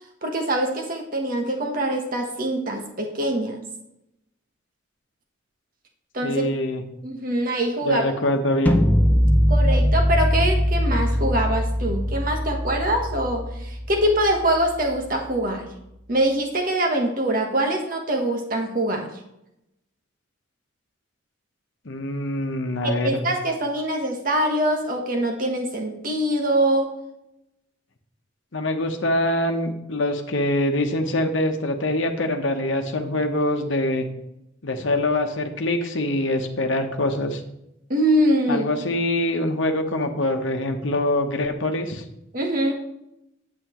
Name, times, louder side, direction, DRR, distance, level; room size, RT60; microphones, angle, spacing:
voice 1, 0.2-3.6 6.1-6.4 7.0-8.1 9.5-15.6 16.1-19.1 22.8-26.9 37.9-38.6 42.3-42.7, right 1 dB, 45° right, 3 dB, 1.1 m, -23 dB
voice 2, 6.2-6.8 7.8-8.8 21.8-23.2 28.5-34.1 34.6-37.4 38.5-42.0, left 1 dB, 70° left, 5 dB, 1.0 m, -24 dB
sound 1, 8.7-14.7, equal, 10° left, 0.4 m, -21 dB
8.8 x 8.0 x 3.1 m, 0.84 s
head